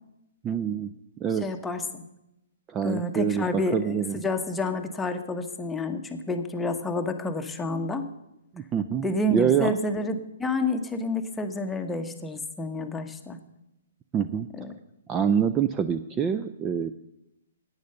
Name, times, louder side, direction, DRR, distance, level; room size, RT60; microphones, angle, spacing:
voice 1, 0.4-0.9 1.2-1.4 2.7-4.2 8.5-9.8 14.1-14.5 15.1-16.9, right 8 dB, 20° right, 11 dB, 0.4 m, -26 dB
voice 2, 1.4-2.0 2.8-8.1 9.0-13.4 14.6-14.7, left 2 dB, 10° left, 6 dB, 1.0 m, -29 dB
10.5 x 8.6 x 6.7 m, 0.88 s
hypercardioid pair, 135°, 0 cm